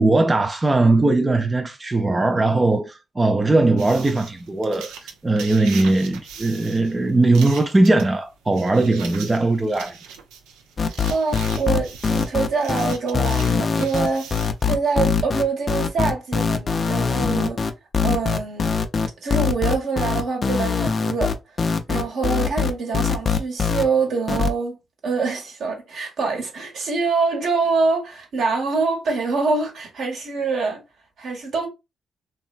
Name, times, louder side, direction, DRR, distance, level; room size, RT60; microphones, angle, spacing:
voice 1, 0.0-10.0, right 2 dB, 25° right, 0.4 m, -19 dB
sound 1, 3.8-14.6, right 7 dB, 90° right, 0.5 m, -41 dB
sound 2, 10.8-23.8 24.3-24.5, left 5 dB, 45° left, 0.4 m, -22 dB
voice 2, 11.1-14.3 14.6-17.6 18.0-18.8 19.2-21.6 21.9-30.8 31.2-31.7, right 4 dB, 70° right, 1.1 m, -25 dB
2.9 x 2.3 x 2.4 m
supercardioid pair, 60°, 0 cm